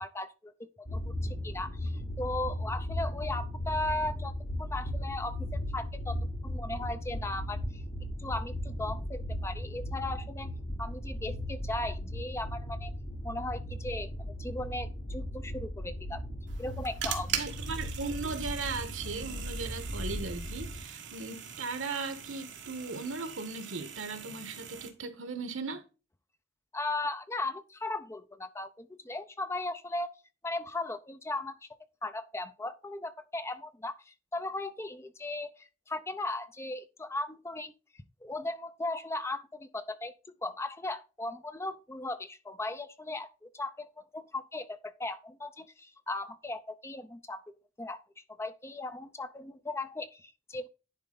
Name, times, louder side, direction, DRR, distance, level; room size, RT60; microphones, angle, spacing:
voice 1, 0.0-6.2 6.4-7.8 8.2-10.5 10.8-12.9 13.2-14.1 14.4-16.2 16.6-17.4 26.7-30.1 30.4-31.7 32.0-37.7 38.2-40.1 40.4-48.0 48.4-50.7, left 2 dB, 15° left, 0.5 m, -37 dB
sound 1, 0.9-20.8, equal, 55° left, 2.8 m, -37 dB
sound 2, 16.5-24.9, right 8 dB, 65° right, 1.5 m, -41 dB
voice 2, 17.3-25.8, right 4 dB, 85° right, 1.2 m, -37 dB
10.5 x 4.3 x 3.8 m
head